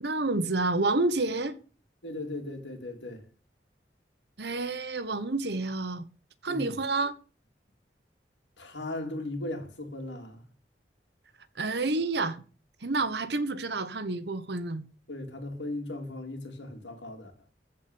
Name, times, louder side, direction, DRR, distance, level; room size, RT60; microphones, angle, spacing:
voice 1, 0.0-1.6 4.4-6.0 6.4-7.1 11.6-12.4 12.8-14.8, right 3 dB, 65° right, 1.2 m, -29 dB
voice 2, 2.0-3.2 6.5-6.8 8.6-10.4 15.1-17.3, left 2 dB, 80° left, 3.7 m, -37 dB
14.5 x 5.2 x 8.6 m
head